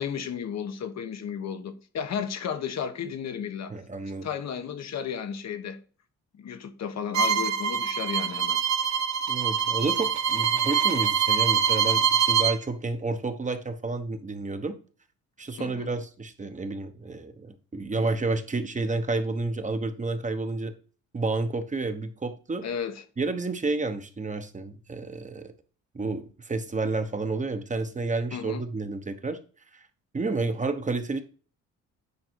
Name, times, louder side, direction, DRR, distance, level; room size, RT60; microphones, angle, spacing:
voice 1, 0.0-3.8 4.2-5.8 6.4-8.6 15.6-15.9 22.6-23.0 28.3-28.6, left 7 dB, 60° left, 1.2 m, -33 dB
voice 2, 3.7-4.3 9.3-14.7 15.4-20.7 21.1-22.6 23.2-25.5 25.9-29.4 30.1-31.2, right 3 dB, 25° right, 1.1 m, -30 dB
Bowed string instrument, 7.1-12.6, right 7 dB, 65° right, 1.1 m, -24 dB
9.6 x 3.9 x 4.6 m
cardioid pair, 90°, 30 cm